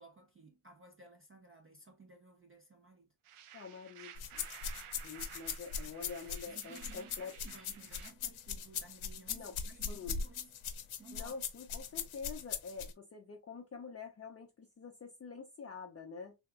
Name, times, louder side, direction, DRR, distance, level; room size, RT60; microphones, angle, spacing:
voice 1, 0.0-3.1 6.5-10.5 11.0-11.3, right 3 dB, 30° right, 0.4 m, -56 dB
sound 1, 3.2-8.1, right 9 dB, 85° right, 0.6 m, -54 dB
voice 2, 3.5-4.4 4.9-7.4 9.3-9.6 9.9-10.2 11.1-16.4, left 5 dB, 30° left, 0.4 m, -47 dB
sound 2, 4.2-12.9, left 6 dB, 75° left, 0.6 m, -40 dB
3.4 x 2.8 x 2.3 m
wide cardioid pair, 150°, 50 cm